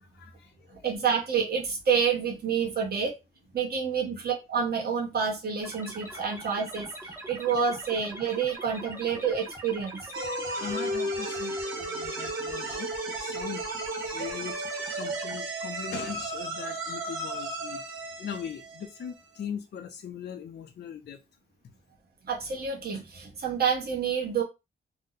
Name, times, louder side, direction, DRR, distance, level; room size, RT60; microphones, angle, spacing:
voice 1, 0.0-0.8 3.6-3.7 6.1-6.2 10.6-13.6 14.1-14.6 14.9-17.8 18.2-21.2, left 8 dB, 55° left, 0.4 m, -40 dB
voice 2, 0.8-3.1 3.5-10.1 22.2-24.4, right 6 dB, 50° right, 0.9 m, -28 dB
sound 1, 5.6-15.4, right 1 dB, 10° right, 0.7 m, -43 dB
sound 2, 10.1-19.4, right 2 dB, 85° right, 1.0 m, -34 dB
2.6 x 2.0 x 3.8 m
wide cardioid pair, 170°, 21 cm